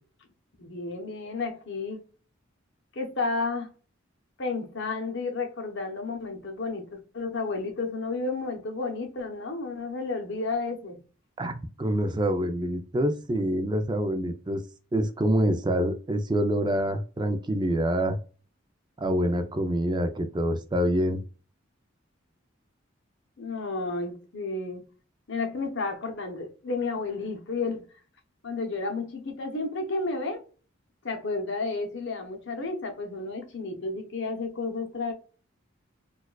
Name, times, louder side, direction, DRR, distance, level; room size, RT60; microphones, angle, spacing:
voice 1, 0.6-2.0 2.9-3.7 4.4-11.0 23.4-24.8 25.3-27.9 28.4-30.5 31.0-35.1, left 3 dB, 60° left, 0.9 m, -32 dB
voice 2, 11.4-14.6 14.9-18.2 19.0-21.2, right 1 dB, 20° right, 0.4 m, -26 dB
4.3 x 2.3 x 2.3 m
head